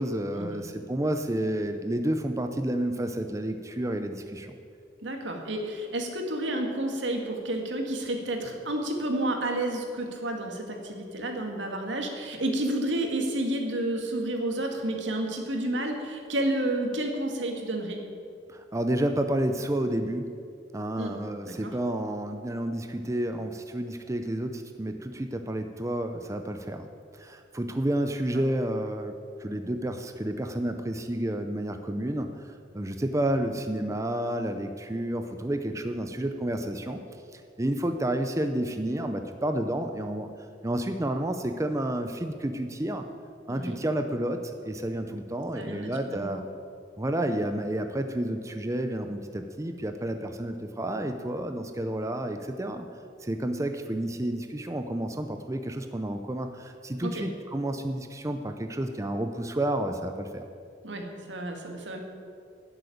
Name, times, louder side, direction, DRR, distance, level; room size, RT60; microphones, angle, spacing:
voice 1, 0.0-4.5 18.5-20.3 20.7-26.9 27.1-37.0 37.3-40.3 40.6-43.0 43.5-46.4 47.0-52.9 53.2-60.4, right 1 dB, 15° right, 7 dB, 0.6 m, -30 dB
voice 2, 5.0-18.0 21.0-21.1 21.4-21.7 43.5-43.8 45.6-46.5 57.0-57.2 60.8-62.0, right 1 dB, 80° right, 3 dB, 2.1 m, -30 dB
12.0 x 7.9 x 9.2 m, 2.4 s
head